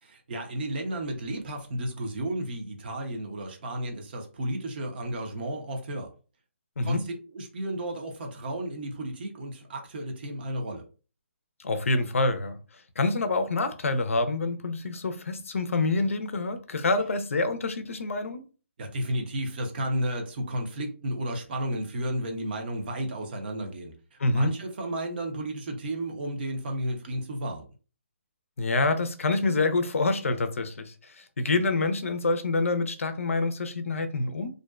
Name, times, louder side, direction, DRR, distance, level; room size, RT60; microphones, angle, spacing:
voice 1, 0.0-6.1 6.8-10.9 18.8-27.7, right 1 dB, 45° right, 0.7 m, -33 dB
voice 2, 11.6-12.6 13.0-18.4 24.2-24.5 28.6-34.5, left 3 dB, 80° left, 0.5 m, -27 dB
2.5 x 2.1 x 2.3 m
hypercardioid pair, 150°, 7 cm